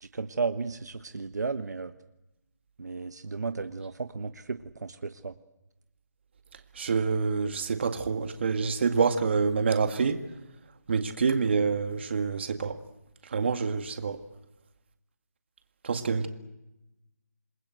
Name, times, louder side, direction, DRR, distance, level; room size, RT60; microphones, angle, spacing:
voice 1, 0.0-1.9 2.8-5.3, right 4 dB, 70° right, 1.3 m, -34 dB
voice 2, 6.8-10.2 10.9-12.8 13.3-14.2 15.8-16.3, right 5 dB, 40° right, 2.0 m, -27 dB
28.0 x 21.0 x 7.9 m
hypercardioid pair, 175°, 10 cm